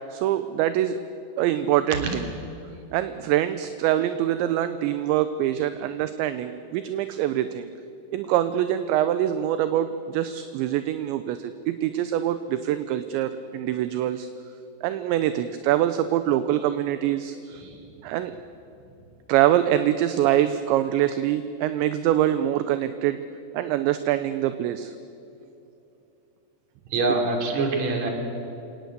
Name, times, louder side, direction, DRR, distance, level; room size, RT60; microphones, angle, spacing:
voice 1, 0.1-1.0 1.4-2.3 2.9-7.7 8.1-14.3 14.8-17.4 18.0-18.4 19.3-23.2 23.5-24.9, right 12 dB, 80° right, 11 dB, 2.9 m, -24 dB
voice 2, 26.9-28.1, right 3 dB, 40° right, 2 dB, 4.1 m, -25 dB
27.0 x 18.5 x 8.2 m, 2.8 s
omnidirectional pair, 5.6 m